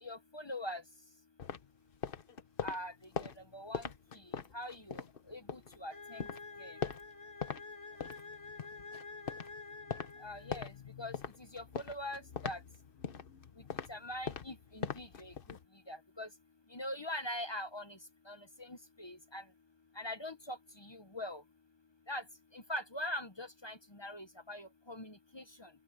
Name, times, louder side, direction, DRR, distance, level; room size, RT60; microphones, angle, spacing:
voice 1, 0.0-0.8 2.6-2.9 3.2-3.9 4.5-6.3 6.6-6.8 10.2-10.7 11.0-11.1 11.5-12.6 13.9-15.3 15.9-16.3 16.7-18.0 18.3-19.4 20.0-21.4 22.1-22.2 22.5-25.7, left 1 dB, 25° left, 0.7 m, -43 dB
sound 1, 1.4-5.8 6.1-7.6 7.9-15.6, left 6 dB, 50° left, 1.1 m, -42 dB
sound 2, 5.9-10.8, left 3 dB, 25° right, 2.6 m, -49 dB
open air
omnidirectional pair, 1.3 m